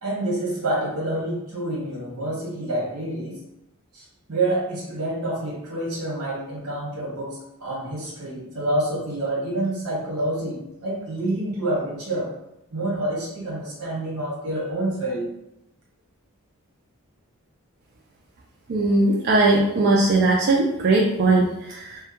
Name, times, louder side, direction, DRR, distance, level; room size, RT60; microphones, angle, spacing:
voice 1, 0.0-3.4 3.9-12.3 12.7-15.3, right 1 dB, 80° right, -4 dB, 1.0 m, -28 dB
voice 2, 18.7-22.0, right 2 dB, 45° right, -2 dB, 0.3 m, -19 dB
2.2 x 2.1 x 2.8 m, 0.85 s
head